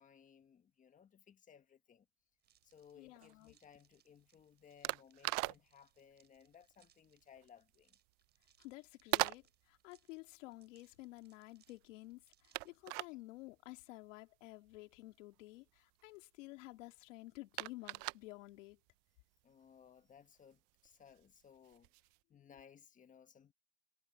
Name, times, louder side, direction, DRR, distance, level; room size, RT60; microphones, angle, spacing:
voice 1, 0.0-2.1 2.6-8.0 19.4-21.9 22.3-23.5, left 8 dB, 20° left, 1.3 m, -62 dB
sound 1, 2.4-12.9, right 9 dB, 25° right, 5.8 m, -75 dB
sound 2, 2.4-22.2, right 25 dB, 55° right, 0.5 m, -45 dB
voice 2, 2.9-3.5 8.6-18.8, left 20 dB, 90° left, 2.6 m, -52 dB
supercardioid pair, 150°, 36 cm